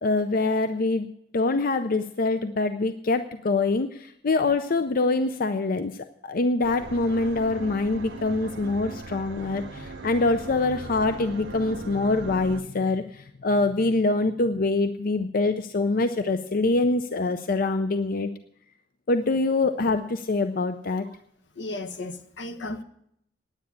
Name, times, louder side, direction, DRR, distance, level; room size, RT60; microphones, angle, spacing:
voice 1, 0.0-5.9 6.2-18.3 19.1-21.1, left 3 dB, 50° left, 0.5 m, -25 dB
sound 1, 6.6-12.6, right 3 dB, 75° right, 0.8 m, -39 dB
voice 2, 21.6-22.8, left 2 dB, 75° left, 1.1 m, -34 dB
9.8 x 9.7 x 8.5 m
head